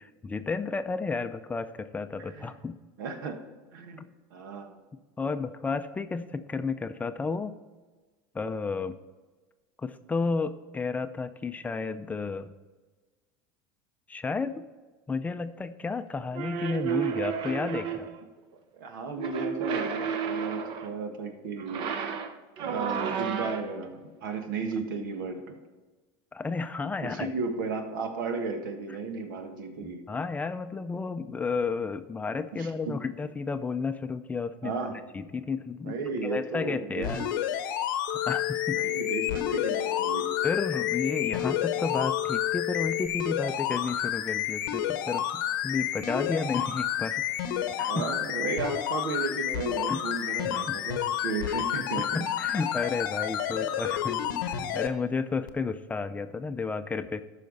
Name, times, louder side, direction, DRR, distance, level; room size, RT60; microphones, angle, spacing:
voice 1, 0.0-2.8 4.0-4.1 5.2-7.5 8.3-9.0 9.8-12.5 14.1-14.6 15.1-18.1 26.3-27.3 29.8-34.8 35.1-36.0 36.2-37.2 38.3-38.8 40.4-47.2 47.8-48.0 49.9-50.0 50.5-50.8 51.5-51.6 52.0-57.2, left 4 dB, 15° left, 10 dB, 0.5 m, -32 dB
voice 2, 2.2-2.5 3.0-3.4 3.7-4.0 4.3-4.7 18.7-21.9 22.6-25.6 27.0-30.1 32.5-33.0 34.6-35.0 35.8-37.1 38.7-40.3 47.9-52.2 53.5-53.7, right 4 dB, 85° right, 6 dB, 1.5 m, -34 dB
sound 1, 16.3-18.2 19.2-21.0 21.6-23.9, right 7 dB, 50° right, 0.9 m, -32 dB
sound 2, 37.0-54.9 55.5-55.6, left 10 dB, 90° left, 0.9 m, -30 dB
sound 3, 38.1-43.1, left 24 dB, 55° left, 0.6 m, -32 dB
13.5 x 5.7 x 4.0 m, 1.3 s
supercardioid pair, 130°, 11 cm